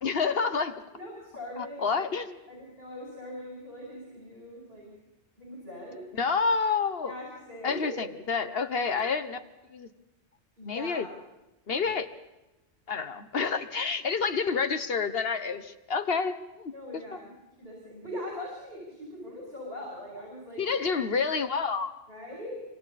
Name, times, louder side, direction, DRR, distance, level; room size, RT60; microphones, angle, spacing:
voice 1, 0.0-0.8 1.6-2.4 6.2-7.1 7.6-9.4 9.7-9.9 10.6-11.1 11.7-12.1 12.9-16.7 17.1-17.2 20.6-21.9, left 5 dB, 60° left, 10 dB, 1.2 m, -28 dB
voice 2, 0.9-2.1 2.5-4.9 5.4-6.0 7.1-8.1 10.6-11.1 16.7-20.6 22.1-22.7, left 1 dB, 60° right, -3 dB, 6.5 m, -41 dB
26.5 x 25.0 x 4.2 m, 0.98 s
omnidirectional pair, 1.2 m